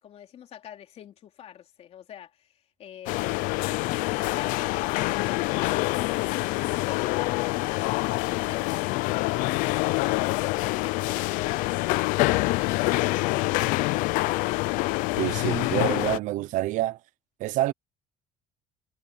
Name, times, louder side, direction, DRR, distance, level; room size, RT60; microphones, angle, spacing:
voice 1, 0.0-5.9 6.5-11.6, left 10 dB, 50° left, 3.6 m, -45 dB
sound 1, 3.1-16.2, left 22 dB, 85° left, 0.6 m, -26 dB
voice 2, 15.2-17.0 17.4-17.7, right 15 dB, 70° right, 0.8 m, -27 dB
cardioid pair, 125°, 13 cm